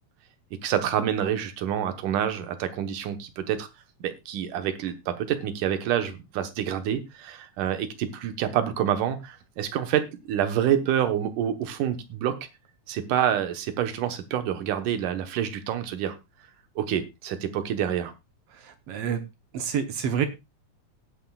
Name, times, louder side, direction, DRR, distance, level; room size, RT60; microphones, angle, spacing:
voice 1, 0.6-3.7 4.0-12.4 12.9-16.2 16.8-18.1, right 10 dB, 85° right, 9 dB, 2.7 m, -27 dB
voice 2, 18.5-19.2 19.5-20.3, right 7 dB, 65° right, 8 dB, 1.7 m, -28 dB
17.5 x 9.1 x 2.3 m, 0.24 s
omnidirectional pair, 3.6 m